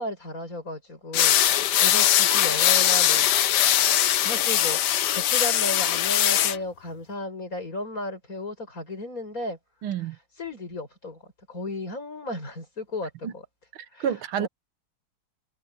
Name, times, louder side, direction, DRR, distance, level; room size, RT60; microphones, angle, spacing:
voice 1, 0.0-3.4 4.2-9.6 10.4-11.2 11.5-13.4 13.9-14.1 14.4-14.5, left 2 dB, 40° left, 6.4 m, -34 dB
sound 1, 1.1-6.6, left 11 dB, 65° left, 1.2 m, -21 dB
voice 2, 9.8-10.2 13.2-13.3 13.7-14.5, right 9 dB, 80° right, 1.8 m, -29 dB
omnidirectional pair, 2.3 m